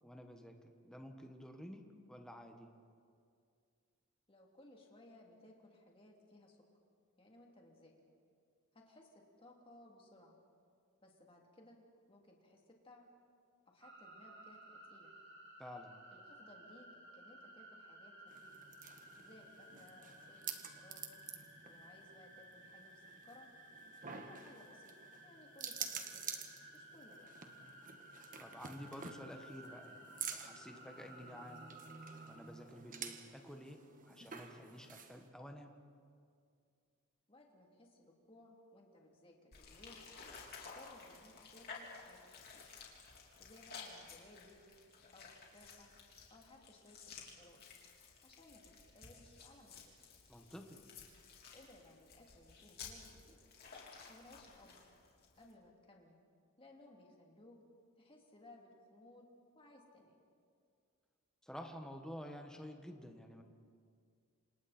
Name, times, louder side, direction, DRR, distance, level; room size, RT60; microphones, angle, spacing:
voice 1, 0.0-2.7 15.6-16.0 28.4-31.6 32.2-35.7 50.3-50.8 61.4-63.4, equal, 5° left, 3 dB, 1.5 m, -51 dB
voice 2, 4.3-6.6 7.2-7.9 8.7-10.4 11.0-11.8 12.1-13.1 13.7-15.1 16.1-16.9 17.1-18.5 19.2-21.0 21.6-23.5 24.1-24.9 25.2-26.2 26.7-27.3 37.3-40.0 40.6-42.6 43.4-44.7 45.1-45.9 46.3-47.6 48.2-48.6 48.9-49.9 51.5-53.4 54.0-54.8 55.4-56.2 56.6-57.6 58.0-59.3 59.5-60.2, left 1 dB, 25° left, 0 dB, 3.1 m, -61 dB
sound 1, 13.8-32.3, right 1 dB, 55° right, 5.9 m, -57 dB
sound 2, 18.3-35.3, right 6 dB, 40° right, 1.5 m, -50 dB
sound 3, 39.5-55.5, left 5 dB, 45° left, 3.7 m, -54 dB
28.0 x 27.0 x 4.4 m, 2.3 s
head